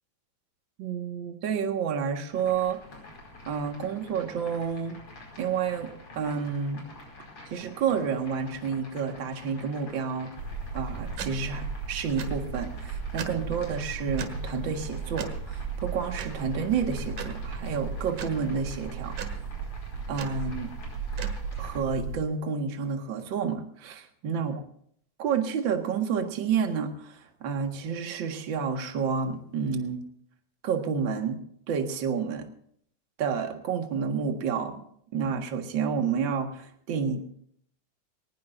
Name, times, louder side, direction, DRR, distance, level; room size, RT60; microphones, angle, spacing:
voice 1, 0.8-2.8 3.5-5.0 5.4-6.8 7.5-10.3 10.7-19.2 20.1-20.7 21.6-24.6 25.2-30.0 30.6-31.4 31.7-32.5 33.2-34.8 35.1-37.3, right 6 dB, 45° right, 4 dB, 2.1 m, -30 dB
sound 1, 2.3-21.8, left 2 dB, 45° left, 5.9 m, -48 dB
sound 2, 10.4-22.2, right 5 dB, 85° right, 3.1 m, -35 dB
21.5 x 19.0 x 2.6 m, 0.65 s
omnidirectional pair, 3.6 m